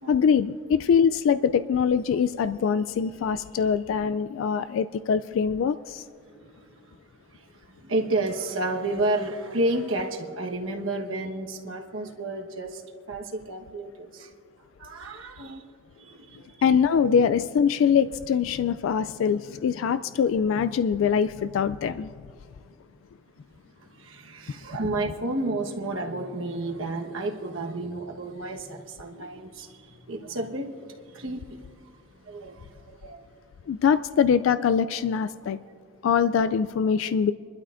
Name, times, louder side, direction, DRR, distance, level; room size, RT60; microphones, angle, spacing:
voice 1, 0.1-6.0 16.6-22.1 33.7-35.6 36.0-37.3, left 7 dB, 75° left, 13 dB, 0.3 m, -23 dB
voice 2, 6.2-7.0 7.3-12.8 13.1-14.3 14.8-15.6 16.0-16.6 17.0-17.1 23.8-31.6 32.2-33.3, right 2 dB, 80° right, 2 dB, 1.3 m, -31 dB
27.0 x 12.0 x 2.5 m, 2.3 s
head